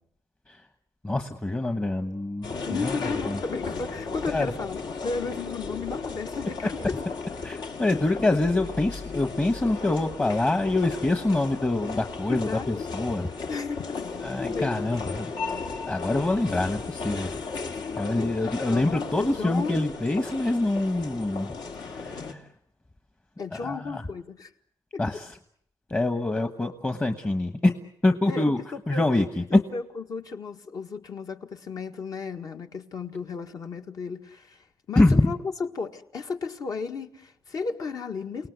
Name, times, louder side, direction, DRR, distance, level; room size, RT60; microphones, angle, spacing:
voice 1, 1.0-3.0 3.3-3.4 4.3-4.5 7.4-13.3 14.2-15.3 15.9-17.4 18.0-22.5 23.5-24.0 25.0-25.4 25.9-27.7 28.0-28.6 28.9-29.6 34.9-35.3, left 2 dB, 20° left, 1.2 m, -25 dB
sound 1, 2.4-22.3, left 4 dB, 70° left, 2.5 m, -35 dB
voice 2, 2.7-7.0 12.3-12.8 13.5-15.7 18.2-18.3 18.7-19.8 23.4-24.5 24.9-25.2 28.3-29.0 29.5-38.5, left 4 dB, 55° left, 1.7 m, -34 dB
29.5 x 18.5 x 8.1 m
cardioid pair, 110°, 8 cm